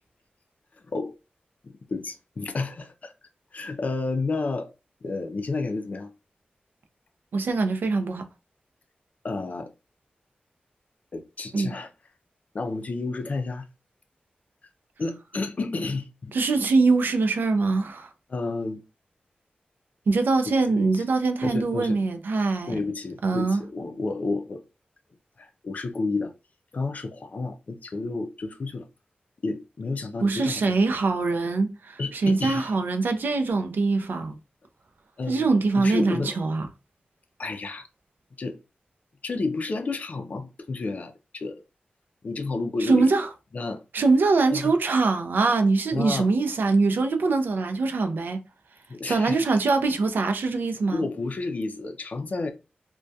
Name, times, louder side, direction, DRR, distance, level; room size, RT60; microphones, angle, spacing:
voice 1, 1.9-3.1 3.5-4.7 5.0-6.1 9.2-9.7 11.1-11.9 12.5-13.7 15.0-16.3 18.3-18.8 20.5-21.0 21.4-22.0 22.7-24.6 25.4-26.3 26.7-28.8 29.4-31.0 32.0-32.7 35.2-36.3 37.4-37.9 38.4-38.6 39.2-41.6 42.2-43.2 43.5-43.8 44.5-44.8 45.9-46.3 48.9-49.4 50.9-52.5, left 3 dB, 50° left, 0.4 m, -31 dB
voice 2, 7.3-8.3 11.5-11.8 16.3-18.1 20.1-22.7 23.2-23.6 30.2-34.4 35.3-36.7 42.8-43.3 43.9-48.4 49.1-51.1, right 3 dB, 75° right, 0.4 m, -23 dB
2.2 x 2.2 x 2.6 m
wide cardioid pair, 120°, 3 cm